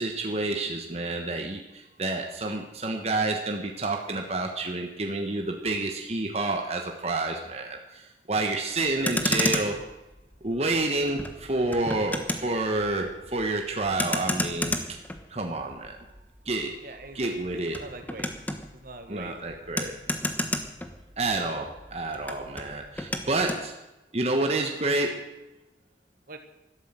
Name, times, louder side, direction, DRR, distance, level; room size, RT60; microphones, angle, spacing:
voice 1, 0.0-9.8 10.4-14.8 15.3-16.1 16.4-16.8 17.1-17.8 19.1-20.0 21.2-23.8 24.1-25.5, right 2 dB, 35° right, 3 dB, 1.3 m, -29 dB
Motor vehicle (road), 8.9-21.5 21.7-23.7, left 1 dB, 10° left, 1.2 m, -33 dB
voice 2, 16.8-17.2 17.5-18.3 18.7-19.5 26.3-26.4, right 2 dB, 50° right, 7 dB, 1.5 m, -43 dB
12.5 x 12.0 x 7.5 m, 1.0 s
head